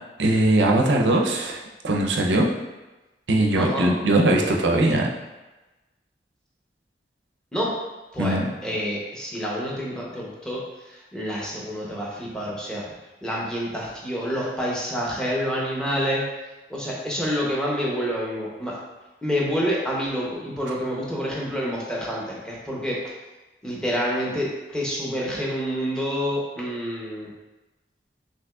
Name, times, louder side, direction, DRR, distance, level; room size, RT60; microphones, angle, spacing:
voice 1, 0.2-2.5 3.3-5.1 8.2-8.4, right 1 dB, 85° right, 0 dB, 0.6 m, -20 dB
voice 2, 3.6-3.9 7.5-7.7 8.1-12.8 13.2-16.2 16.7-18.7 19.2-23.1 23.6-27.3, equal, 5° left, -5 dB, 0.8 m, -28 dB
6.1 x 2.9 x 2.3 m, 1.1 s
head